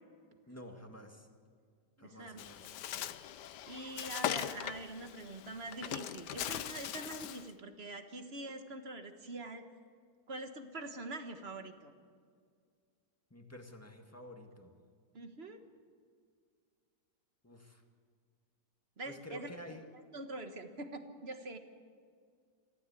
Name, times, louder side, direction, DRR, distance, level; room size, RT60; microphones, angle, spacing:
voice 1, 0.5-1.3 2.0-2.8 13.3-14.7 17.4-17.8 19.1-19.9, equal, 10° left, 4 dB, 1.8 m, -50 dB
voice 2, 2.0-2.4 3.7-9.7 10.3-11.9 15.1-15.6 19.0-21.6, right 2 dB, 35° right, 7 dB, 1.6 m, -44 dB
Bird, 2.4-7.5, left 11 dB, 70° left, 1.3 m, -40 dB
25.0 x 15.5 x 8.4 m, 2.1 s
omnidirectional pair, 1.9 m